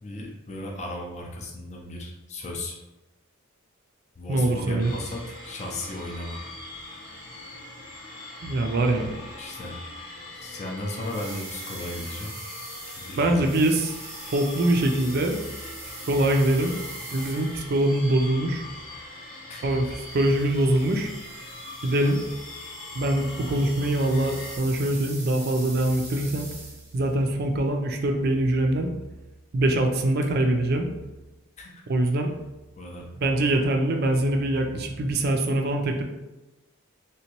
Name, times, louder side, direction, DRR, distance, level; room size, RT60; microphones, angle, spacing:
voice 1, 0.0-2.8 4.2-6.5 9.4-9.8 10.3-12.3 13.0-13.4 19.5-19.8 31.6-31.8 32.8-33.1 34.7-34.8, left 1 dB, 30° left, 0 dB, 0.4 m, -35 dB
voice 2, 4.3-4.9 8.4-9.1 13.2-14.0 14.3-15.4 16.1-16.8 17.1-18.6 19.6-21.1 21.8-22.2 23.0-26.5 26.9-28.9 29.5-30.9 31.9-32.3 33.2-36.0, right 1 dB, 45° right, 4 dB, 0.3 m, -23 dB
sound 1, 4.8-24.6, left 2 dB, 85° left, 1.1 m, -42 dB
sound 2, 10.9-17.9 19.8-27.1, right 2 dB, 10° right, 0.7 m, -43 dB
3.3 x 2.9 x 2.9 m, 1.0 s
head